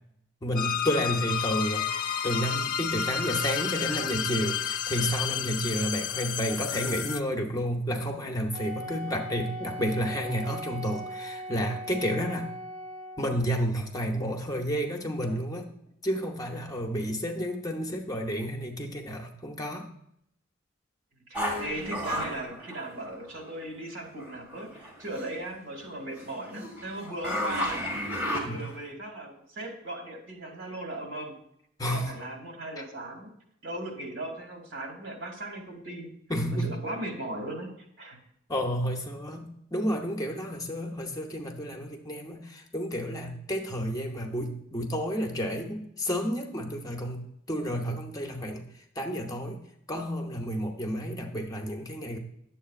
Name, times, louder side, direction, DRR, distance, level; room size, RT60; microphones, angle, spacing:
voice 1, 0.4-12.5 13.2-15.7 16.0-19.9 28.3-28.6 31.8-32.1 32.8-32.9 36.3-36.8 38.5-48.7 49.0-49.6 49.9-52.2, equal, 20° left, 3 dB, 0.8 m, -31 dB
sound 1, 0.6-7.2, left 9 dB, 50° left, 0.6 m, -31 dB
Wind instrument woodwind instrument, 8.5-13.4, equal, 50° right, 1.7 m, -39 dB
sound 2, 21.3-23.5 24.2-25.4 25.8-28.9, equal, 10° right, 1.9 m, -34 dB
voice 2, 21.3-27.8 28.2-31.4 31.8-33.3 33.6-36.1 36.6-37.7 38.0-38.2, right 1 dB, 80° right, 2 dB, 2.3 m, -38 dB
10.0 x 7.6 x 2.5 m, 0.74 s
head